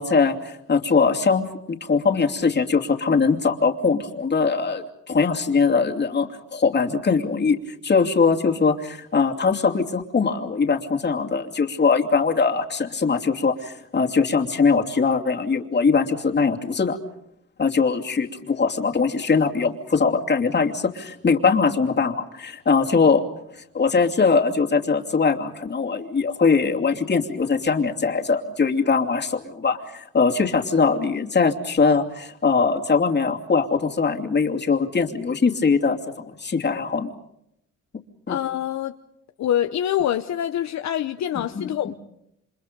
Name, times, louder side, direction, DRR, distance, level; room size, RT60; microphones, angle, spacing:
voice 1, 0.0-17.0 17.6-23.2 23.5-37.1 37.9-38.4 41.3-41.7, left 5 dB, 35° left, 2.7 m, -21 dB
voice 2, 38.3-38.9 39.4-41.9, left 10 dB, 65° left, 0.9 m, -25 dB
29.0 x 26.0 x 5.3 m
cardioid pair, 90°, 30 cm